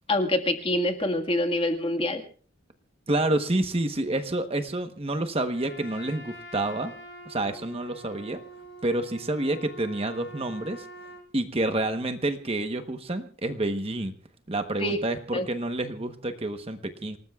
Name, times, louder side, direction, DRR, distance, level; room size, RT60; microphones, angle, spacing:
voice 1, 0.1-2.2 14.8-15.0 15.3-15.5, left 1 dB, 25° left, 5 dB, 1.8 m, -25 dB
voice 2, 3.1-6.9 7.2-8.4 8.8-10.9 11.3-14.1 14.5-17.2, right 1 dB, 30° right, 7 dB, 1.1 m, -28 dB
Trumpet, 5.5-11.3, right 1 dB, 60° left, 7.4 m, -45 dB
27.5 x 19.0 x 2.4 m, 0.42 s
head